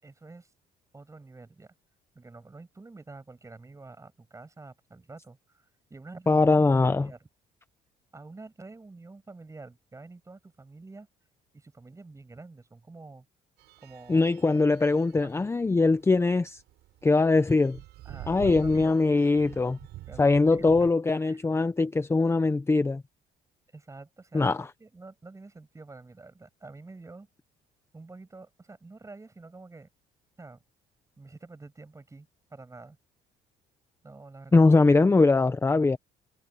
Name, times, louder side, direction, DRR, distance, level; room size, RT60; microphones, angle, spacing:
voice 1, 0.0-0.5 0.9-1.7 2.1-6.6 7.0-7.3 8.1-11.1 11.5-13.3 13.8-14.3 14.8-14.9 15.2-15.4 18.0-18.9 20.1-20.4 20.8-20.9 21.2-21.4 23.7-27.3 27.9-29.9 30.4-30.6 31.2-33.0 34.0-34.9, right 3 dB, 20° right, 7.4 m, -48 dB
voice 2, 6.3-7.1 14.1-16.6 17.0-17.8 18.3-19.8 20.2-23.0 24.3-24.7 34.5-36.0, left 3 dB, 15° left, 0.8 m, -22 dB
sound 1, 13.6-20.9, right 16 dB, 80° right, 7.3 m, -46 dB
cardioid pair, 110°, 17 cm